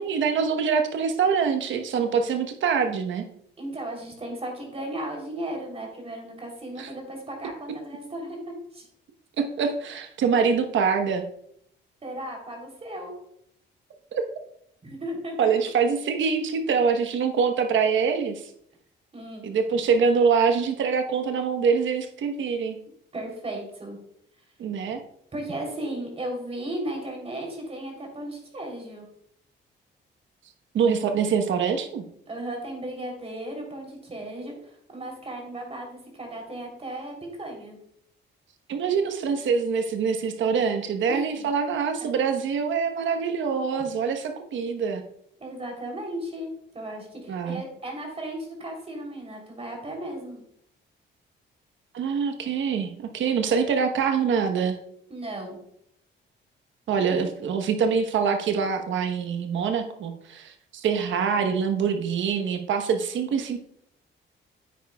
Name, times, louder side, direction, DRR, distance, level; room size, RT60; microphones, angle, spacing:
voice 1, 0.0-3.2 6.8-6.9 9.4-11.2 14.1-14.2 15.4-18.4 19.4-22.8 24.6-25.0 30.7-32.0 38.7-45.0 47.3-47.6 51.9-54.8 56.9-63.6, right 6 dB, 70° right, 6 dB, 1.2 m, -24 dB
voice 2, 3.6-8.8 12.0-13.1 14.8-15.7 19.1-19.5 23.1-24.0 25.3-29.1 32.3-37.8 41.1-41.5 45.4-50.4 55.1-55.6 57.1-57.2, right 1 dB, 30° right, 1 dB, 3.5 m, -35 dB
9.4 x 9.1 x 2.4 m, 0.71 s
cardioid pair, 90°, 20 cm